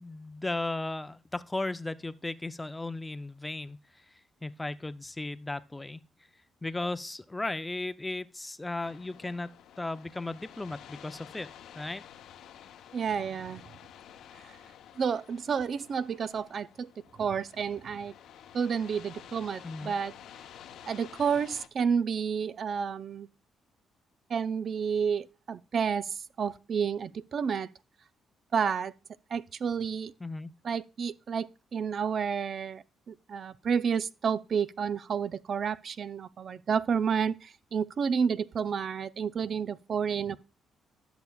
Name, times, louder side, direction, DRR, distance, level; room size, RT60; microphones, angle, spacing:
voice 1, 0.0-3.8 4.4-6.0 6.6-9.5 9.8-11.5 11.7-12.0 19.6-19.9 30.2-30.5, left 2 dB, 15° left, 0.5 m, -35 dB
sound 1, 8.8-21.7, left 9 dB, 80° left, 0.8 m, -51 dB
voice 2, 12.9-13.6 15.0-16.9 17.2-18.1 18.5-20.1 20.9-23.3 24.3-27.7 28.5-28.9 29.3-30.1 30.6-31.5 31.7-40.4, right 6 dB, 50° right, 0.4 m, -30 dB
13.0 x 6.9 x 2.3 m
cardioid pair, 90°, 0 cm